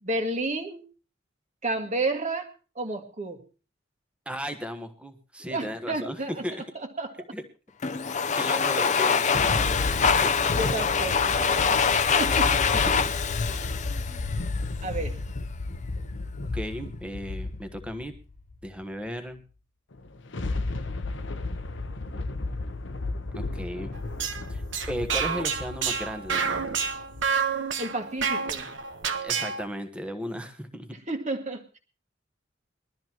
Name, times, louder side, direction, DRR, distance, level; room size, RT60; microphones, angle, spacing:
voice 1, 0.0-0.9 1.6-2.5 2.8-3.4 5.5-6.4 6.8-7.1 10.6-11.8 12.2-12.6 14.8-15.2 27.8-28.7 31.1-31.8, right 2 dB, 40° right, 5 dB, 1.9 m, -31 dB
voice 2, 4.2-6.6 7.3-7.4 8.3-10.3 12.9-13.1 16.5-18.1 18.6-19.4 23.3-23.9 24.5-24.6 24.9-26.7 29.2-30.9, equal, 5° right, 6 dB, 1.2 m, -35 dB
Domestic sounds home sounds, 7.8-14.7, left 6 dB, 40° left, 0.7 m, -24 dB
sound 1, 9.0-18.7 20.0-27.3, left 2 dB, 65° left, 0.9 m, -33 dB
sound 2, 23.9-29.7, right 6 dB, 70° right, 1.2 m, -29 dB
21.5 x 13.0 x 3.0 m, 0.35 s
head